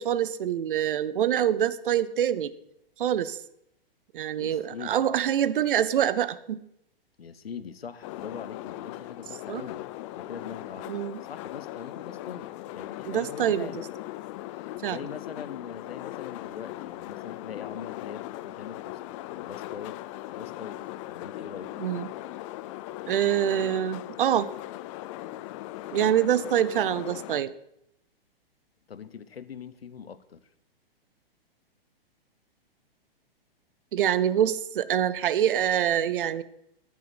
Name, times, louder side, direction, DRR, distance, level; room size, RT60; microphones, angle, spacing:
voice 1, 0.0-2.5 3.0-3.4 4.1-6.6 9.5-9.6 10.9-11.2 13.1-13.7 14.8-15.0 21.8-22.1 23.1-24.5 25.9-27.5 33.9-36.4, right 10 dB, 60° right, 17 dB, 0.8 m, -25 dB
voice 2, 4.4-5.1 7.2-9.9 10.1-13.8 14.6-20.0 20.3-21.8 28.9-30.5, left 7 dB, 80° left, 15 dB, 1.0 m, -42 dB
sound 1, 8.0-27.4, left 15 dB, 35° left, 0.5 m, -39 dB
9.8 x 9.2 x 7.8 m, 0.77 s
hypercardioid pair, 115°, 30 cm